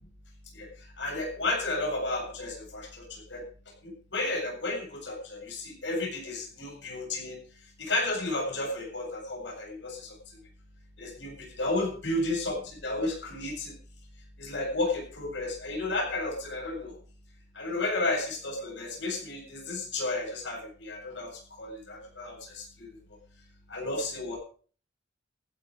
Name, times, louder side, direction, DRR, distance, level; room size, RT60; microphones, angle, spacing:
voice 1, 1.0-3.4 4.1-7.4 7.8-10.1 11.0-11.3 11.6-12.6 12.8-13.7 14.4-16.9 17.6-21.3 21.6-22.6 23.7-24.4, left 2 dB, 65° left, -1 dB, 7.7 m, -32 dB
15.5 x 11.5 x 5.2 m, 0.43 s
head